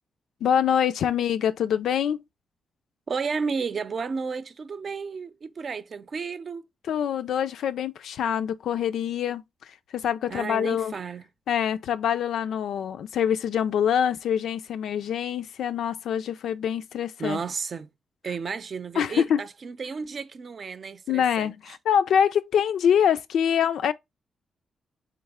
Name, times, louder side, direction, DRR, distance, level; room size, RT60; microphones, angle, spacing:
voice 1, 0.4-2.2 6.9-9.4 9.9-10.9 11.5-17.4 19.0-19.4 21.1-23.9, left 8 dB, 80° left, 0.4 m, -25 dB
voice 2, 3.1-6.7 10.3-11.2 17.2-17.9 18.2-21.8, right 5 dB, 50° right, 0.6 m, -32 dB
4.0 x 3.2 x 3.5 m
cardioid pair, 75°, 0 cm